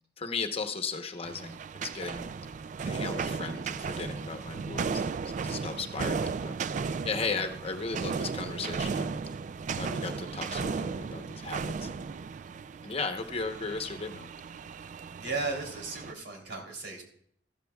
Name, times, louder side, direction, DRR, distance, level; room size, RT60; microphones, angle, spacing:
voice 1, 0.2-2.3 2.8-5.2 5.4-6.6 6.8-9.2 9.8-12.1 12.8-14.3, left 4 dB, 35° left, 5 dB, 1.0 m, -36 dB
sound 1, 1.2-16.1, right 5 dB, 45° right, 0.3 m, -35 dB
voice 2, 15.2-17.0, right 3 dB, 90° right, 1 dB, 3.2 m, -35 dB
14.0 x 13.5 x 2.3 m, 0.65 s
head